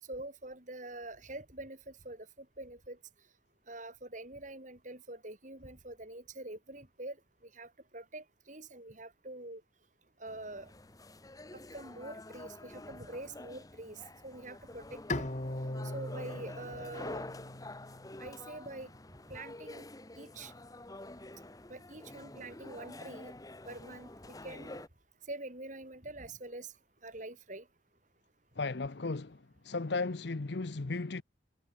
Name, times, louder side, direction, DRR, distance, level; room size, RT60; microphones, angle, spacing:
voice 1, 0.1-3.0 3.7-7.2 7.4-9.6 10.2-10.7 11.5-15.3 15.9-17.3 18.2-18.9 19.3-19.8 20.2-20.5 21.7-23.3 23.6-24.8 25.3-26.7 27.0-27.7, right 2 dB, 45° right, 6.2 m, -45 dB
sound 1, 10.3-24.9, left 2 dB, 20° left, 1.2 m, -48 dB
Bowed string instrument, 15.1-18.3, left 2 dB, 40° left, 1.6 m, -39 dB
voice 2, 28.6-31.2, left 3 dB, 65° left, 0.8 m, -35 dB
head